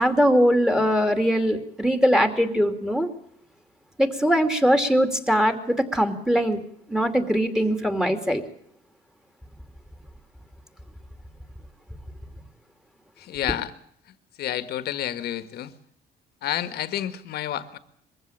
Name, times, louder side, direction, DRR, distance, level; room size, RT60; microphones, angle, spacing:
voice 1, 0.0-3.1 4.0-6.6 6.9-8.4, equal, 5° right, 7 dB, 2.7 m, -21 dB
voice 2, 13.2-13.7 14.4-15.7 16.4-17.8, left 12 dB, 70° left, 12 dB, 1.7 m, -29 dB
22.0 x 15.5 x 8.8 m, 0.69 s
cardioid pair, 110°, 17 cm